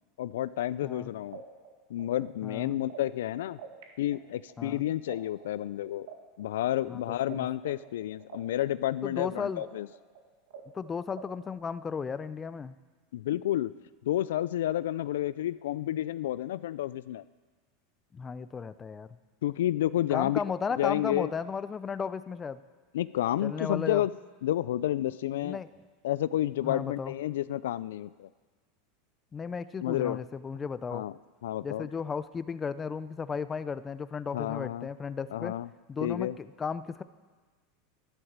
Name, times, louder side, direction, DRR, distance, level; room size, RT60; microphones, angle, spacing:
voice 1, 0.2-1.4 1.9-3.6 4.0-6.1 6.4-9.9 13.1-13.7 14.0-17.2 19.4-20.4 20.8-21.3 22.9-24.1 24.4-25.6 26.0-28.3 29.8-30.2 30.9-31.1 31.4-31.9 34.3-34.9 35.3-35.7 36.0-36.4, left 13 dB, 85° left, 17 dB, 0.3 m, -30 dB
sound 1, 1.3-3.8 4.1-7.4 7.6-11.5, right 8 dB, 75° right, 1.9 m, -47 dB
voice 2, 2.4-2.8 4.6-4.8 6.9-7.5 9.0-9.6 10.7-12.8 18.1-19.1 20.1-22.6 23.4-24.0 25.4-25.7 26.6-27.1 29.3-31.0 31.6-35.5 35.9-37.0, left 6 dB, 20° left, 14 dB, 0.5 m, -35 dB
11.5 x 11.0 x 7.3 m, 1.4 s
supercardioid pair, 130°, 0 cm